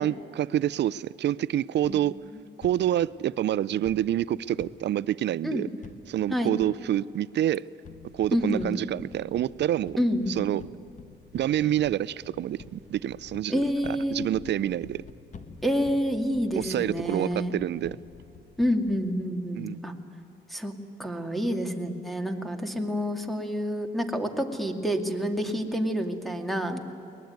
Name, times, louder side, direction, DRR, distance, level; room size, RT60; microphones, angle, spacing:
voice 1, 0.0-2.1 2.6-5.7 6.1-7.6 8.1-10.0 10.4-10.6 11.3-13.6 14.1-15.0 16.6-18.0 19.6-19.8, right 12 dB, 60° right, 19 dB, 0.5 m, -27 dB
sound 1, 1.8-2.7 3.8-4.7 5.8-6.3 6.6-6.7 7.8-19.0, left 4 dB, 40° left, 1.8 m, -48 dB
voice 2, 8.3-8.7 10.0-10.4 13.5-14.3 15.6-17.5 18.6-19.9 20.5-20.7 21.0-26.8, equal, ahead, 5 dB, 2.3 m, -28 dB
23.0 x 19.5 x 9.5 m, 2.7 s
cardioid pair, 90°, 20 cm